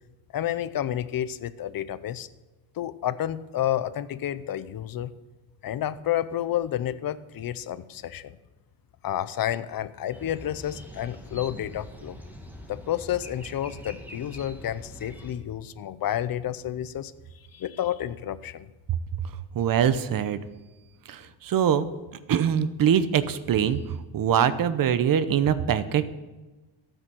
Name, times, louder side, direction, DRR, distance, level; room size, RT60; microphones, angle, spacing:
voice 1, 0.3-2.3 2.8-5.1 5.6-8.4 9.0-12.2 12.7-17.1 17.5-18.7, left 11 dB, 50° left, 15 dB, 0.6 m, -30 dB
sound 1, 10.1-15.3, equal, 5° right, 1.8 m, -43 dB
voice 2, 19.5-20.4 21.1-21.9 22.3-23.8 24.1-26.1, right 8 dB, 45° right, 13 dB, 0.8 m, -23 dB
12.5 x 9.0 x 6.2 m, 1.2 s
cardioid pair, 165°, 46 cm